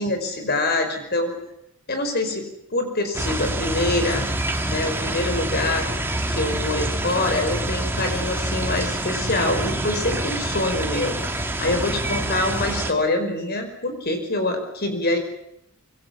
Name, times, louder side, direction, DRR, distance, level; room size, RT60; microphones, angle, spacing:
voice 1, 0.0-1.4 1.9-2.5 2.7-4.3 4.7-5.9 6.3-15.2, left 2 dB, 50° left, 6 dB, 5.2 m, -25 dB
sound 1, 3.1-12.9, right 1 dB, 10° right, 2.7 m, -26 dB
26.0 x 24.5 x 7.4 m, 0.78 s
head